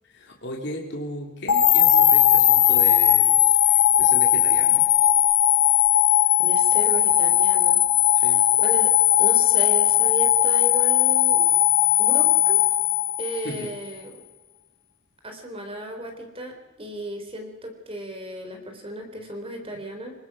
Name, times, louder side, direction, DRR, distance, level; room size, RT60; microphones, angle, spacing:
voice 1, 0.0-4.9 8.1-8.4 13.4-13.7, left 1 dB, 55° left, 0 dB, 3.2 m, -36 dB
sound 1, 1.5-13.7, left 12 dB, 80° left, 1.3 m, -18 dB
voice 2, 6.4-7.8 8.2-8.9 9.2-11.5 12.0-12.6 13.2-14.1 15.2-20.1, right 1 dB, 25° right, 4 dB, 3.9 m, -35 dB
27.0 x 19.5 x 6.2 m, 1.2 s
head